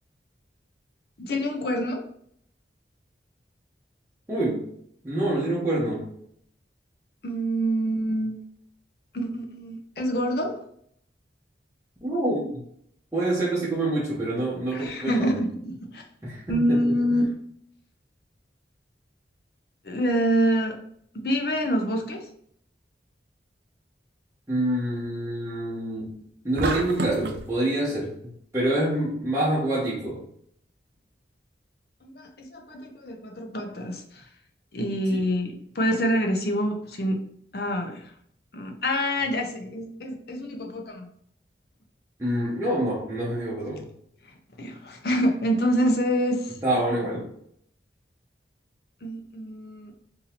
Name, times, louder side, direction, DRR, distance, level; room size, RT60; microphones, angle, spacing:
voice 1, 1.2-2.0 7.2-8.4 9.1-10.6 14.7-16.1 16.5-17.2 19.8-20.8 21.1-22.3 32.0-34.2 34.7-37.3 37.5-38.1 38.5-41.1 44.6-46.6 49.0-49.9, equal, 55° left, 3 dB, 0.6 m, -26 dB
voice 2, 4.3-4.7 5.0-6.1 12.0-12.6 13.1-15.3 16.2-16.8 17.1-17.2 24.5-26.1 26.4-30.2 35.1-35.2 42.2-43.9 46.6-47.3, right 1 dB, 15° right, -7 dB, 0.7 m, -26 dB
sound 1, 26.6-27.4, right 2 dB, 60° right, 0.4 m, -28 dB
2.8 x 2.7 x 4.1 m, 0.66 s
head